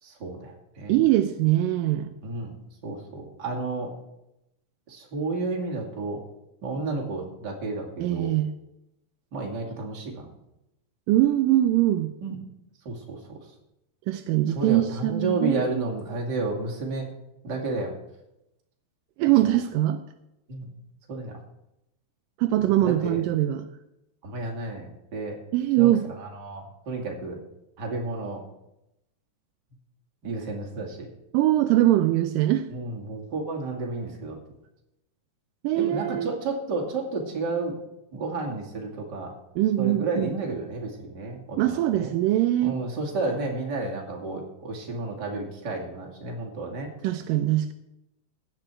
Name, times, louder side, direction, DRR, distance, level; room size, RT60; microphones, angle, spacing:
voice 1, 0.0-1.0 2.2-2.6 2.8-3.9 4.9-6.2 6.6-8.3 9.3-10.3 12.2-12.4 12.8-13.4 14.5-17.1 17.4-17.9 19.4-19.5 20.5-20.7 21.1-21.4 22.6-23.2 24.2-25.4 25.8-27.4 27.8-28.4 30.2-31.1 32.7-34.4 35.8-37.8 38.1-39.3 39.8-42.1 42.6-46.9, right 3 dB, 35° right, 0 dB, 2.5 m, -31 dB
voice 2, 0.9-2.1 8.0-8.5 11.1-12.1 14.1-15.8 19.2-20.0 22.4-23.7 25.5-26.1 31.3-32.7 35.6-36.3 39.6-40.3 41.6-42.8 47.0-47.7, right 14 dB, 80° right, 9 dB, 2.2 m, -22 dB
16.0 x 10.0 x 4.5 m, 0.88 s
omnidirectional pair, 4.0 m